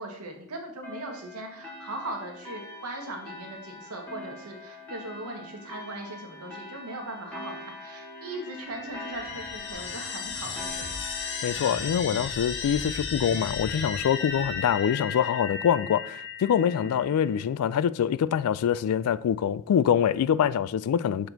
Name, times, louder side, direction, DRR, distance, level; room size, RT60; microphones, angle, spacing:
voice 1, 0.0-11.0 16.8-17.0, right 1 dB, 80° right, 1.4 m, -39 dB
sound 1, 0.8-13.9, left 1 dB, 5° left, 1.6 m, -44 dB
sound 2, 8.1-17.4, left 5 dB, 55° left, 0.8 m, -35 dB
voice 2, 11.4-21.3, left 8 dB, 75° left, 0.3 m, -25 dB
6.6 x 4.3 x 3.9 m
head